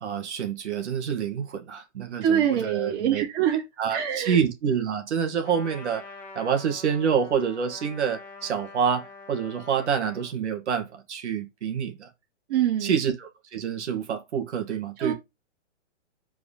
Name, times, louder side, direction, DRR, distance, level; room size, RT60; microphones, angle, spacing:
voice 1, 0.0-3.2 3.8-6.1 6.4-12.1 12.8-15.1, right 7 dB, 70° right, 2.2 m, -27 dB
voice 2, 2.2-3.6 3.9-4.4 12.5-12.9 15.0-15.1, right 9 dB, 50° right, 3.0 m, -24 dB
Trumpet, 5.4-10.3, left 3 dB, 5° left, 1.7 m, -45 dB
5.2 x 4.8 x 5.0 m
hypercardioid pair, 165°, 36 cm